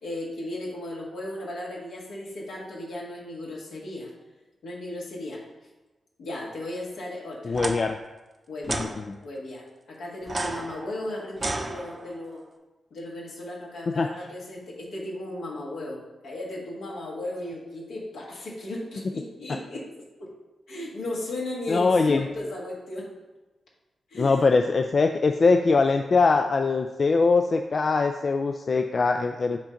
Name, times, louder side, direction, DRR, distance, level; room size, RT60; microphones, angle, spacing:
voice 1, 0.0-4.1 4.6-5.4 6.2-7.6 8.5-8.9 9.2-12.4 12.9-19.8 20.2-20.3 20.7-23.1 24.1-24.5, left 1 dB, 85° left, -4 dB, 1.7 m, -35 dB
voice 2, 7.4-8.0 8.7-9.2 13.9-14.1 21.7-22.2 24.1-29.6, left 4 dB, 55° left, 6 dB, 0.3 m, -22 dB
sound 1, 7.5-7.7 8.6-8.9 10.2-12.3, right 2 dB, 40° right, 0.7 m, -32 dB
7.2 x 2.6 x 5.7 m, 1.1 s
cardioid pair, 50°, 0 cm